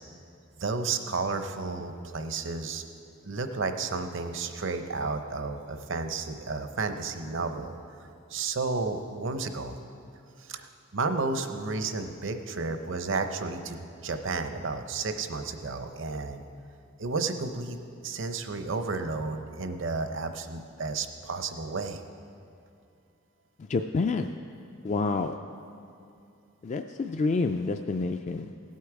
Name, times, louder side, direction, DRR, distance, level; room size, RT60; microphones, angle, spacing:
voice 1, 0.6-2.8 3.2-7.7 8.3-9.8 10.4-16.4 17.0-17.8 18.0-22.0, right 3 dB, 60° right, 8 dB, 0.7 m, -32 dB
voice 2, 23.6-24.3 24.8-25.3 26.6-28.5, left 3 dB, 35° left, 6 dB, 0.3 m, -28 dB
17.0 x 8.4 x 4.8 m, 2.6 s
head